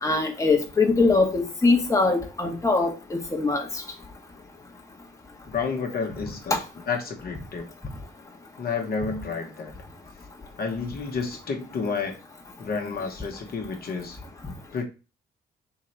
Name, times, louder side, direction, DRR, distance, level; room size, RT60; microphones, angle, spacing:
voice 1, 0.0-3.6, left 3 dB, 15° left, 1 dB, 1.1 m, -22 dB
voice 2, 5.5-6.6 6.9-7.7 8.6-9.7 10.6-12.2 12.6-14.2 14.7-14.8, left 5 dB, 50° left, 2 dB, 1.0 m, -30 dB
3.8 x 2.9 x 4.4 m, 0.30 s
cardioid pair, 90°, 20 cm